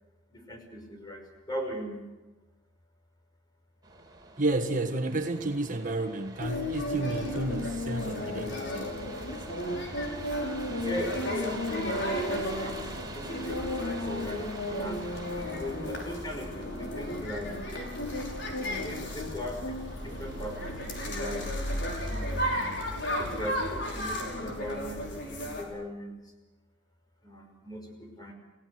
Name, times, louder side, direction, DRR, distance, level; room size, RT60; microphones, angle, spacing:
voice 1, 0.3-2.0 10.8-13.6 13.9-15.1 15.5-17.5 18.7-19.8 20.0-22.0 23.1-26.1 27.2-28.3, equal, 20° left, 3 dB, 5.4 m, -39 dB
sound 1, 3.8-20.7, right 3 dB, 20° right, 4.0 m, -46 dB
voice 2, 4.4-8.9, right 2 dB, 45° right, 4 dB, 1.6 m, -31 dB
sound 2, 6.4-25.6, left 1 dB, 65° left, 5.4 m, -33 dB
29.5 x 17.0 x 7.8 m, 1.1 s
head